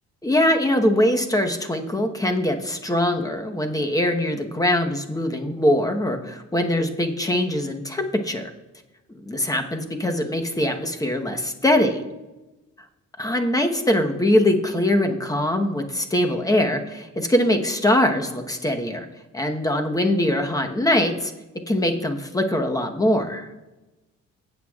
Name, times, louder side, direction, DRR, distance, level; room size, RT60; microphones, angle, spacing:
voice 1, 0.2-8.5 9.2-12.0 13.2-19.1 19.3-21.3 21.7-23.5, left 1 dB, 10° left, 4 dB, 1.1 m, -22 dB
19.5 x 8.1 x 2.4 m, 1.1 s
cardioid pair, 90°, 30 cm